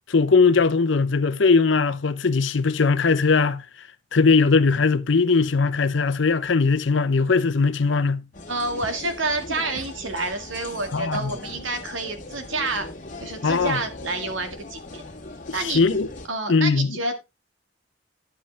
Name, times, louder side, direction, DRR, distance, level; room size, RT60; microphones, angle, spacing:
voice 1, 0.1-3.6 4.1-8.2 10.9-11.3 13.4-13.8 15.5-16.1 16.5-17.0, left 4 dB, 65° left, 0.7 m, -20 dB
sound 1, 8.3-16.3, left 2 dB, 45° left, 1.8 m, -39 dB
voice 2, 8.5-12.9 13.2-15.0 15.5-15.9 16.3-17.1, right 2 dB, 80° right, 1.9 m, -28 dB
10.0 x 7.5 x 3.3 m
head